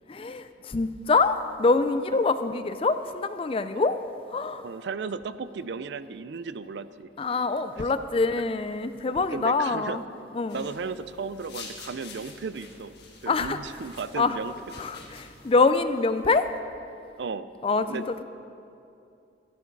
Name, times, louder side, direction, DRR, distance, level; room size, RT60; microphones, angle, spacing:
voice 1, 0.1-4.0 4.3-4.7 7.2-10.0 10.3-10.6 13.3-13.6 14.2-14.4 14.8-16.5 17.6-18.2, left 3 dB, 30° left, 11 dB, 0.4 m, -25 dB
voice 2, 4.6-7.1 9.1-10.0 10.5-12.9 13.2-14.5 17.2-17.5 17.9-18.2, right 5 dB, 70° right, 14 dB, 0.4 m, -35 dB
sound 1, 10.5-15.6, left 4 dB, 65° left, 1.6 m, -47 dB
14.0 x 10.5 x 4.6 m, 2.6 s
head